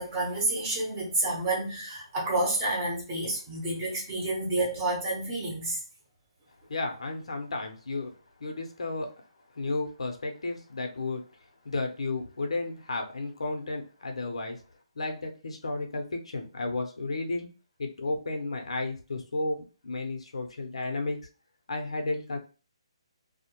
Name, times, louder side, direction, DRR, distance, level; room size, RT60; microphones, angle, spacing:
voice 1, 0.0-5.8, right 2 dB, 20° right, 0.8 m, -29 dB
voice 2, 6.7-8.1 8.4-9.1 9.5-11.2 11.6-14.6 15.0-17.5 17.8-21.2 21.7-22.4, left 2 dB, 90° left, 0.7 m, -33 dB
2.3 x 2.1 x 2.9 m
hypercardioid pair, 165°, 3 cm